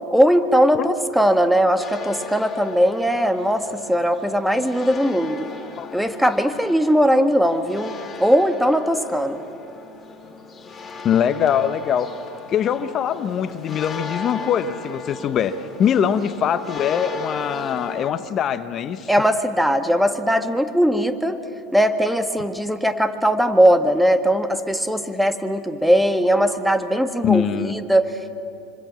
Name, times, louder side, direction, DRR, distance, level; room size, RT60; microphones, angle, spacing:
voice 1, 0.1-5.5 5.9-7.9 8.2-9.4 19.1-21.4 21.7-28.3, equal, ahead, 8 dB, 1.7 m, -19 dB
sound 1, 1.8-18.1, left 4 dB, 20° left, 4.0 m, -37 dB
voice 2, 11.0-12.1 12.5-19.1 27.2-27.8, left 8 dB, 40° left, 11 dB, 1.0 m, -22 dB
26.0 x 26.0 x 7.5 m, 2.7 s
hypercardioid pair, 90°, 0 cm